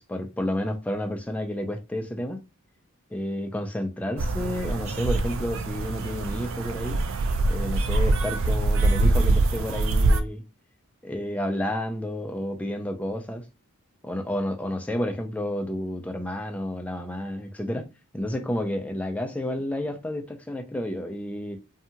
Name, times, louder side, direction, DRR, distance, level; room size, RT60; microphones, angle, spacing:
voice 1, 0.0-2.4 3.1-7.0 7.5-10.4 11.0-13.4 14.0-17.9 18.1-21.6, left 1 dB, 5° left, 0.4 m, -30 dB
sound 1, 4.2-10.2, right 2 dB, 65° right, 0.4 m, -24 dB
2.7 x 2.3 x 2.8 m
head